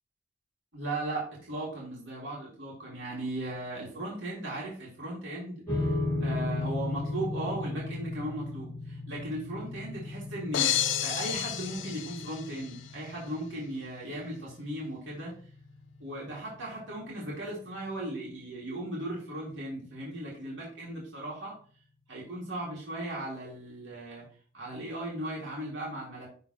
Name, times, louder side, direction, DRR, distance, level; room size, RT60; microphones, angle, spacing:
voice 1, 0.7-5.9 6.2-15.3 16.0-21.5 22.1-24.2 24.5-26.3, right 1 dB, 80° right, -5 dB, 2.2 m, -37 dB
sound 1, 5.7-18.2, left 2 dB, 10° left, 3.4 m, -37 dB
sound 2, 10.5-12.8, left 10 dB, 80° left, 0.6 m, -31 dB
11.0 x 3.8 x 2.9 m, 0.43 s
head